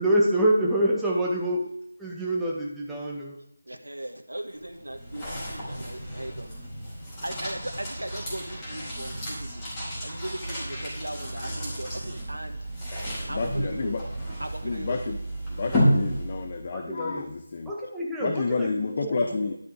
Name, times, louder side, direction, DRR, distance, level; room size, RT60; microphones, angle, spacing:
voice 1, 0.0-1.7 2.0-3.4 16.7-17.3 17.6-19.6, right 1 dB, 5° right, -5 dB, 1.5 m, -26 dB
voice 2, 3.6-6.5 7.2-9.7 10.0-12.6 13.3-14.0 14.4-15.1 19.3-19.4, right 1 dB, 75° right, 5 dB, 1.4 m, -38 dB
sound 1, 4.5-16.7, equal, 15° left, 4.2 m, -31 dB
voice 3, 13.3-14.0 14.6-15.2 15.5-17.7 18.2-19.5, left 4 dB, 30° left, 6 dB, 0.8 m, -30 dB
11.5 x 7.9 x 4.8 m, 0.78 s
figure-of-eight pair, 160°, 0 cm